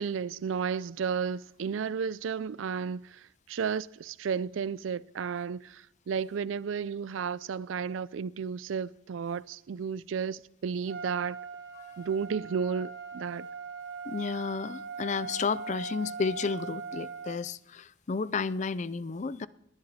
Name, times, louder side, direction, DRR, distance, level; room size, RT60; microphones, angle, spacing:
voice 1, 0.0-11.4 12.0-13.5, right 6 dB, 80° right, 0.4 m, -33 dB
Trumpet, 10.9-17.4, right 4 dB, 60° right, 1.7 m, -40 dB
voice 2, 14.1-19.5, left 4 dB, 35° left, 0.4 m, -32 dB
20.0 x 10.5 x 4.1 m
head